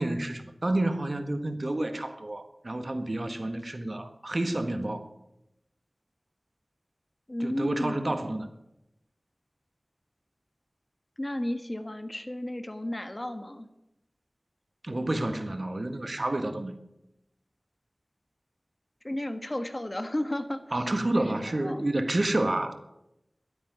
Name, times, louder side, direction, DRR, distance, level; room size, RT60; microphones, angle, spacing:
voice 1, 0.0-5.1 7.4-8.5 14.8-16.8 20.7-22.8, right 1 dB, 55° right, 1.5 m, -29 dB
voice 2, 7.3-8.1 11.2-13.7 19.0-20.8 21.1-21.9, left 1 dB, 35° left, 1.6 m, -33 dB
12.5 x 8.7 x 9.3 m
wide cardioid pair, 40°, 0 cm